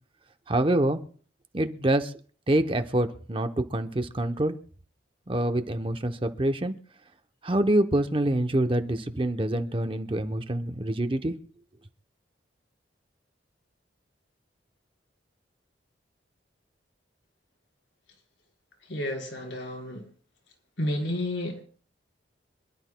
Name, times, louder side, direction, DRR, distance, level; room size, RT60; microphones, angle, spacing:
voice 1, 0.5-1.0 1.5-2.1 2.5-4.6 5.3-6.7 7.4-11.3, right 1 dB, 30° right, 8 dB, 0.8 m, -26 dB
voice 2, 18.9-20.0 20.8-21.6, left 1 dB, 85° left, 1 dB, 4.1 m, -31 dB
26.5 x 11.5 x 2.2 m, 0.43 s
head